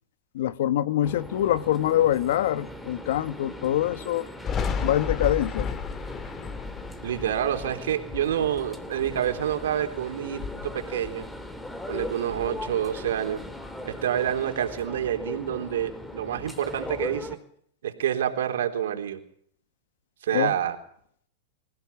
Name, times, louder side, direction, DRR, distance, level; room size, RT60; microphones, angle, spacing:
voice 1, 0.3-4.3 4.8-5.7 20.3-20.5, left 12 dB, 70° left, 1.3 m, -24 dB
sound 1, 1.0-17.4, left 1 dB, 5° left, 2.9 m, -39 dB
Thunder, 4.4-9.9 10.2-11.7 12.0-13.7, left 5 dB, 30° left, 2.4 m, -34 dB
voice 2, 7.0-11.3 11.9-13.4 13.8-17.4 17.8-19.2 20.2-20.8, right 10 dB, 80° right, 3.8 m, -28 dB
26.0 x 16.0 x 7.2 m
hypercardioid pair, 125°, 0 cm